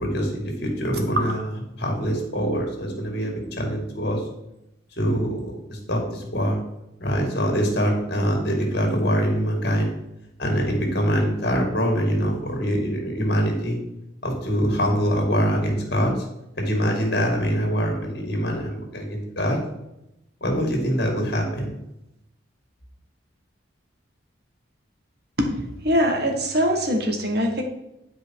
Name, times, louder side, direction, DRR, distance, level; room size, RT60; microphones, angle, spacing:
voice 1, 0.0-1.5 1.8-4.2 5.0-6.6 7.0-9.9 10.4-13.8 14.2-16.2 16.6-19.6 20.4-21.7, equal, 55° left, 2 dB, 2.4 m, -24 dB
voice 2, 25.4-27.6, equal, 55° right, 3 dB, 1.6 m, -23 dB
10.5 x 4.9 x 4.7 m, 0.88 s
head